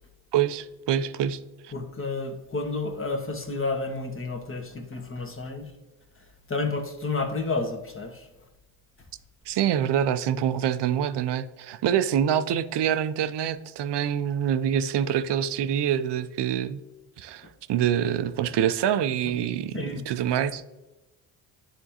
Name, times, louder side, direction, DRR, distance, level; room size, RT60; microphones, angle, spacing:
voice 1, 0.3-1.4 1.6-1.7 9.5-16.8 17.2-20.7, right 9 dB, 55° right, 12 dB, 0.6 m, -26 dB
voice 2, 1.7-5.7 6.2-8.3 17.4-17.5 19.7-20.0, left 3 dB, 25° left, 4 dB, 1.4 m, -31 dB
9.9 x 3.6 x 2.9 m, 1.1 s
hypercardioid pair, 50°, 49 cm